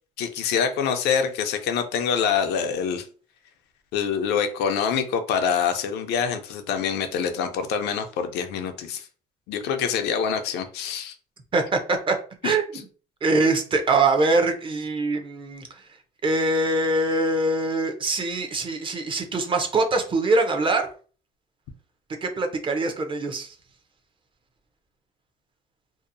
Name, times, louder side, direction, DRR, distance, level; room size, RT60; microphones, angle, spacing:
voice 1, 0.2-3.0 3.9-9.1 9.5-11.1 12.4-12.5, left 7 dB, 80° left, 7 dB, 0.5 m, -25 dB
voice 2, 11.5-12.2 12.4-12.6 13.2-15.7 16.2-20.9 22.2-23.5, right 2 dB, 30° right, 6 dB, 0.5 m, -23 dB
2.7 x 2.0 x 2.5 m, 0.39 s
cardioid pair, 110°, 17 cm